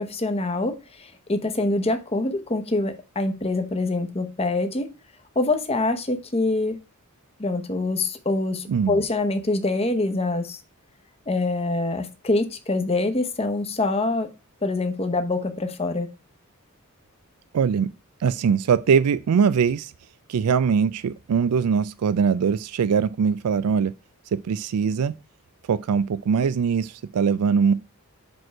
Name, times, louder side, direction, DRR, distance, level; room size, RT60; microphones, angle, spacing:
voice 1, 0.0-4.9 5.3-6.8 7.4-10.6 11.3-14.3 14.6-16.1, left 2 dB, 25° left, 0.9 m, -25 dB
voice 2, 17.5-17.9 18.2-19.9 20.3-23.9 24.3-25.1 25.7-27.7, right 6 dB, 90° right, 0.4 m, -21 dB
6.0 x 5.2 x 4.6 m
head